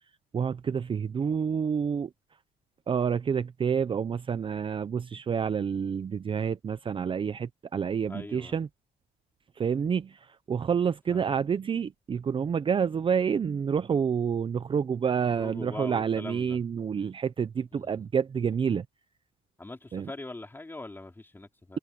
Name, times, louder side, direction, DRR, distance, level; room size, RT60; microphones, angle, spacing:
voice 1, 0.3-2.1 2.9-8.7 9.6-18.9 19.9-20.1, right 7 dB, 30° right, 0.7 m, -28 dB
voice 2, 8.1-8.6 11.1-11.3 15.4-16.6 17.7-18.1 19.6-21.8, left 2 dB, 10° left, 3.6 m, -42 dB
cardioid pair, 110°, 17 cm